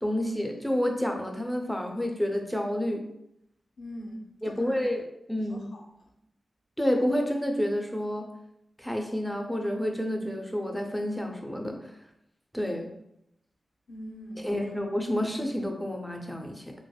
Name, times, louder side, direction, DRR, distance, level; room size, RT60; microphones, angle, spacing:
voice 1, 0.0-3.1 4.4-5.0 5.3-5.7 6.8-8.3 8.8-11.9 12.5-12.9 14.4-16.7, equal, ahead, 2 dB, 0.5 m, -29 dB
voice 2, 3.8-4.9 5.5-6.1 13.9-14.8, left 1 dB, 80° left, 0 dB, 0.5 m, -42 dB
3.3 x 2.0 x 2.2 m, 0.80 s
cardioid pair, 65°, 0 cm